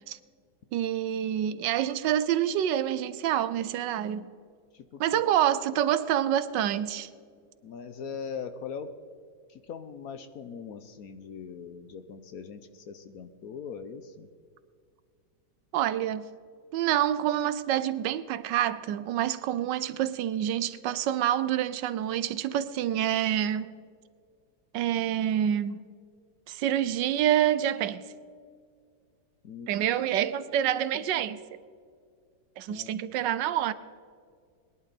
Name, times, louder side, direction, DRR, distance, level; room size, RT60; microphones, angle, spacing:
voice 1, 0.7-4.3 5.0-7.1 15.7-16.3 16.7-23.7 24.7-25.8 26.5-28.0 29.7-31.4 32.6-33.7, right 11 dB, 80° right, 1.3 m, -27 dB
voice 2, 4.7-5.2 7.6-8.9 9.5-14.3 29.4-29.7 32.7-32.9, left 6 dB, 60° left, 1.1 m, -41 dB
21.0 x 11.0 x 4.1 m
omnidirectional pair, 2.0 m